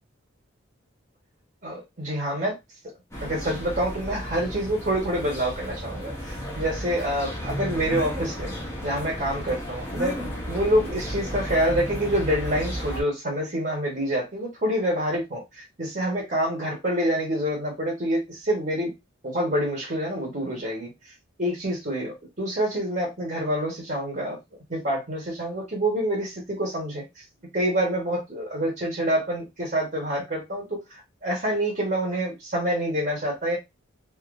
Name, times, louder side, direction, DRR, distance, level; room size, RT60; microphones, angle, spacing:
voice 1, 1.6-2.5 3.2-8.5 8.8-18.9 19.2-20.9 21.4-24.4 24.7-27.2 27.5-33.6, equal, 40° right, -2 dB, 1.1 m, -27 dB
sound 1, 3.1-13.0, equal, 15° left, 0.9 m, -33 dB
3.3 x 2.8 x 2.5 m, 0.21 s
head